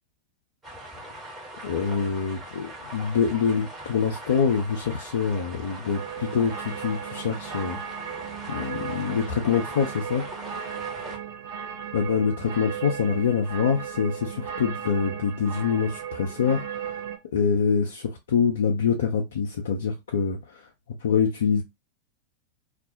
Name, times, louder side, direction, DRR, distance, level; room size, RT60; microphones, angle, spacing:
sound 1, 0.6-11.2, right 1 dB, 15° right, 0.9 m, -41 dB
voice 1, 1.6-7.8 8.5-10.3 11.9-17.0 17.3-20.6 21.0-21.6, left 6 dB, 60° left, 0.4 m, -25 dB
sound 2, 5.9-17.2, right 8 dB, 55° right, 0.5 m, -36 dB
2.4 x 2.0 x 2.6 m
figure-of-eight pair, 90°, 0 cm